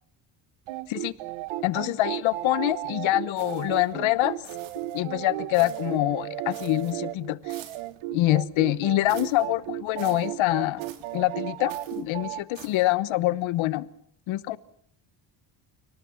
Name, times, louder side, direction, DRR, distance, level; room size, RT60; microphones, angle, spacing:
sound 1, 0.7-12.4, right 15 dB, 85° right, 1.1 m, -35 dB
voice 1, 1.6-4.4 4.9-7.5 8.1-10.8 11.1-13.9 14.3-14.6, left 17 dB, 70° left, 17 dB, 1.1 m, -25 dB
sound 2, 3.4-3.9 4.4-5.0 5.5-6.0 6.5-7.0 7.5-7.9 9.1-9.5 10.0-10.3 10.8-11.2 11.7-12.0 12.5-12.9, right 10 dB, 70° right, 3.2 m, -47 dB
30.0 x 18.5 x 7.0 m, 0.71 s
cardioid pair, 170°, 48 cm